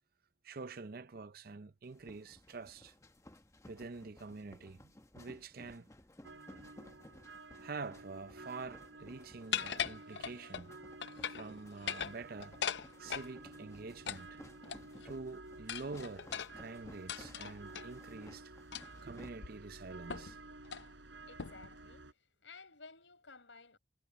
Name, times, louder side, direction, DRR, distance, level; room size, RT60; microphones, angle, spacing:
voice 1, 0.4-2.9 3.7-5.9 7.6-10.8 11.3-12.6 13.0-14.4 15.0-18.5 19.0-20.4, right 3 dB, 55° right, 0.6 m, -47 dB
sound 1, 1.8-19.3, left 1 dB, 15° left, 0.9 m, -58 dB
sound 2, 6.2-22.1, right 2 dB, 80° right, 3.8 m, -53 dB
sound 3, 9.5-10.7 11.0-11.5 11.8-13.3 14.1-15.1 15.7-17.9 18.7-19.0 19.4-19.5 20.1-20.4 20.6-20.9 21.4-21.7, left 8 dB, 65° left, 0.6 m, -40 dB
voice 2, 21.2-23.8, left 4 dB, 85° left, 6.2 m, -56 dB
head